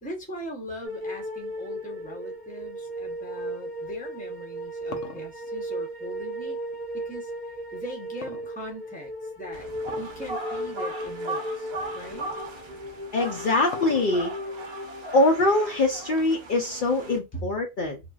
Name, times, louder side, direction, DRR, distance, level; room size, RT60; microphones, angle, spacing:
voice 1, 0.0-6.6 6.9-7.3 7.7-9.1 9.4-9.7 10.0-12.3 17.3-17.5, equal, 10° left, 0.7 m, -40 dB
sound 1, 0.8-16.0, equal, 35° right, 0.9 m, -36 dB
sound 2, 4.4-6.8 8.2-9.1 9.8-10.2 10.6-10.7 11.4-11.6 12.9-14.4, left 6 dB, 80° left, 0.9 m, -42 dB
sound 3, 9.5-17.2, right 2 dB, 65° right, 0.9 m, -38 dB
voice 2, 13.1-14.3 15.1-18.0, left 2 dB, 55° left, 0.6 m, -23 dB
3.2 x 2.2 x 2.3 m
omnidirectional pair, 1.2 m